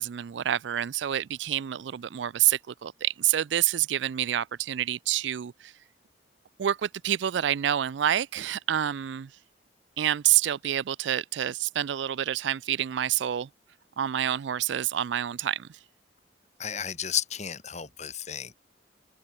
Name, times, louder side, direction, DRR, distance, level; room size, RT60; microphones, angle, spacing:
voice 1, 0.0-5.7 6.6-9.3 10.0-13.5 14.0-15.7, right 11 dB, 75° right, 0.4 m, -27 dB
voice 2, 16.6-18.6, left 9 dB, 40° left, 1.7 m, -33 dB
open air
head